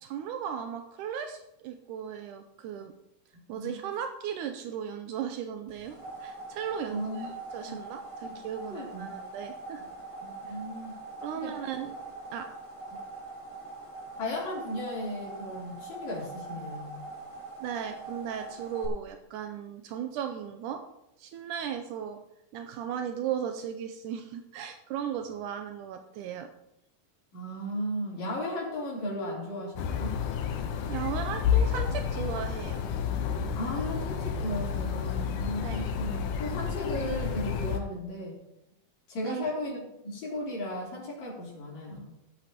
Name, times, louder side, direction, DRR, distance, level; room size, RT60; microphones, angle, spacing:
voice 1, 0.0-2.9 3.5-9.8 10.5-10.6 11.2-12.1 12.3-12.5 17.6-20.8 21.2-22.2 22.5-26.5 30.9-32.8 35.6-35.9 39.2-39.5, right 8 dB, 80° right, 6 dB, 2.1 m, -36 dB
voice 2, 3.5-3.9 6.9-7.3 7.6-7.8 8.7-9.1 10.2-11.0 11.3-11.5 14.2-17.0 27.3-30.2 33.5-38.4 39.1-42.2, equal, 60° left, -4 dB, 4.8 m, -36 dB
sound 1, 5.7-18.9, right 2 dB, 40° left, 0.4 m, -43 dB
sound 2, 29.7-37.8, left 7 dB, 75° left, 2.4 m, -30 dB
17.0 x 8.3 x 3.0 m, 0.84 s
omnidirectional pair, 3.7 m